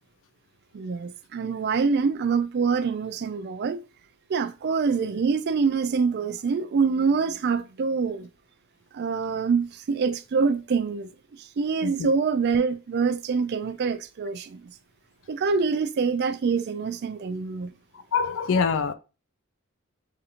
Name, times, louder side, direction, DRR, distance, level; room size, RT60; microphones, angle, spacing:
voice 1, 0.7-3.8 4.3-8.3 8.9-11.1 11.4-14.7 15.3-17.7, right 5 dB, 50° right, 0.4 m, -25 dB
voice 2, 18.1-18.9, left 5 dB, 60° left, 0.4 m, -24 dB
6.8 x 2.5 x 2.8 m
head